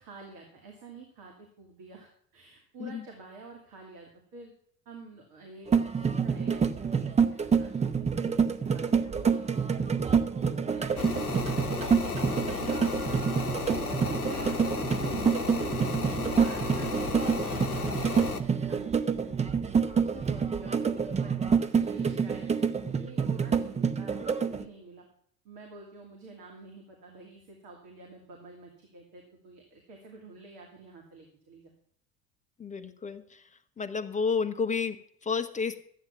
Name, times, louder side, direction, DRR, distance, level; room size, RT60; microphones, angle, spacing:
voice 1, 0.0-4.5 4.8-9.9 10.4-11.2 14.0-16.0 16.4-17.7 18.0-19.4 20.0-25.1 25.4-31.7, right 3 dB, 50° right, 1 dB, 2.7 m, -49 dB
sound 1, 5.7-24.6, right 6 dB, 15° right, 0.8 m, -27 dB
sound 2, 11.0-18.4, left 5 dB, 85° left, 0.9 m, -34 dB
voice 2, 32.6-33.4 33.8-35.8, left 5 dB, 15° left, 9 dB, 0.8 m, -31 dB
13.5 x 9.0 x 6.0 m, 0.65 s
figure-of-eight pair, 65°, 43 cm